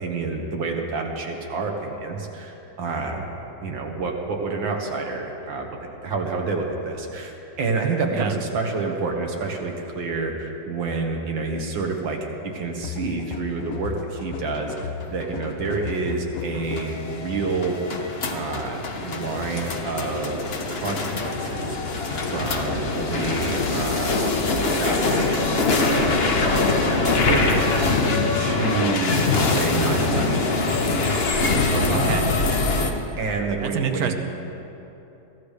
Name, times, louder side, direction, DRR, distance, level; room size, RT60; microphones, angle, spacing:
voice 1, 0.0-3.3 3.6-5.7 6.0-12.2 12.5-17.8 18.3-20.4 20.7-21.8 22.1-24.3 24.5-28.0 28.3-29.2 29.5-30.5 31.9-32.2 33.2-34.1, right 4 dB, 85° right, 2 dB, 2.2 m, -28 dB
sound 1, 12.8-17.0, left 9 dB, 65° left, 0.9 m, -35 dB
sound 2, 14.3-32.9, left 3 dB, 40° left, 1.0 m, -23 dB
voice 2, 31.6-32.3 33.6-34.1, right 7 dB, 60° right, 7 dB, 1.3 m, -27 dB
23.0 x 15.0 x 3.4 m, 3.0 s
omnidirectional pair, 2.0 m